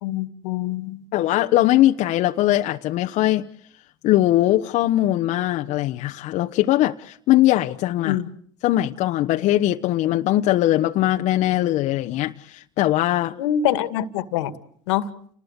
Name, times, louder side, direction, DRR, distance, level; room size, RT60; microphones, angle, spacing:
voice 1, 0.0-1.0 8.1-8.3 13.4-14.5 14.9-15.1, left 11 dB, 80° left, 2.0 m, -24 dB
voice 2, 1.1-3.4 4.0-8.2 8.6-13.4, left 14 dB, 55° left, 1.1 m, -20 dB
30.0 x 20.0 x 8.2 m
hypercardioid pair, 90°, 14 cm